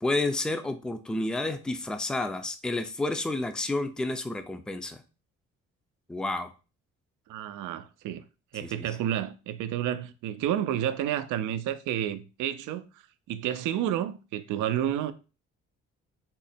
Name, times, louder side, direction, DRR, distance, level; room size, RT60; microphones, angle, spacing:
voice 1, 0.0-5.0 6.1-6.5 8.6-8.9, left 2 dB, 5° left, 0.4 m, -30 dB
voice 2, 7.3-8.2 8.5-12.9 13.3-15.1, right 11 dB, 80° right, 0.5 m, -30 dB
3.7 x 2.1 x 4.1 m
cardioid pair, 90°, 30 cm